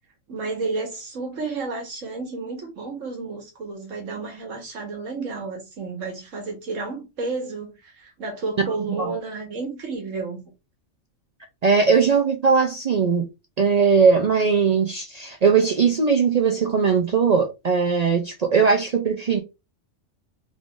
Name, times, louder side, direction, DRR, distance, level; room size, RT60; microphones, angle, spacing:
voice 1, 0.3-10.5, right 3 dB, 80° right, 1.6 m, -31 dB
voice 2, 11.6-13.3 13.6-19.4, right 5 dB, 65° right, 0.4 m, -19 dB
3.5 x 2.5 x 3.6 m
omnidirectional pair, 1.3 m